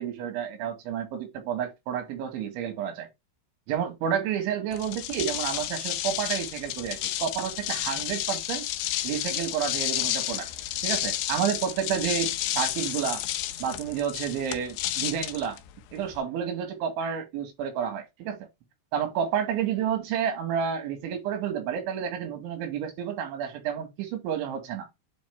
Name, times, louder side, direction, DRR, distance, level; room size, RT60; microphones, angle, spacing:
voice 1, 0.0-3.1 3.7-8.7 9.0-10.5 10.8-13.2 13.6-15.6 15.9-18.4 18.9-24.9, right 8 dB, 85° right, 4.3 m, -30 dB
sound 1, 4.7-16.2, left 13 dB, 80° left, 2.9 m, -31 dB
9.2 x 4.4 x 3.4 m
omnidirectional pair, 5.3 m